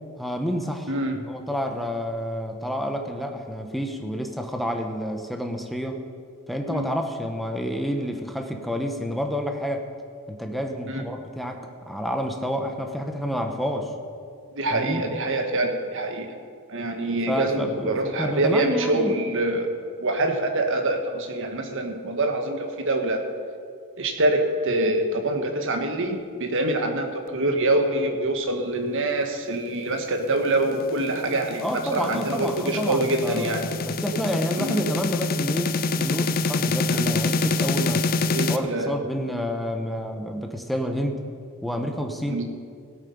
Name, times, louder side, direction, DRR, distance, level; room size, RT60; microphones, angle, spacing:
voice 1, 0.2-0.9 1.1-6.0 6.5-9.8 10.3-13.9 14.7-15.0 17.3-19.1 31.6-38.1 38.5-41.2 41.6-42.4, equal, ahead, 4 dB, 1.0 m, -29 dB
voice 2, 0.9-1.2 6.7-6.9 10.9-11.0 14.5-16.3 16.7-19.7 20.0-23.2 24.0-33.6 34.6-34.8 36.9-37.0 38.3-38.9 42.3-42.4, right 2 dB, 60° right, 4 dB, 1.4 m, -25 dB
sound 1, 30.5-38.6, left 3 dB, 45° left, 0.5 m, -26 dB
17.0 x 8.3 x 5.5 m, 2.2 s
head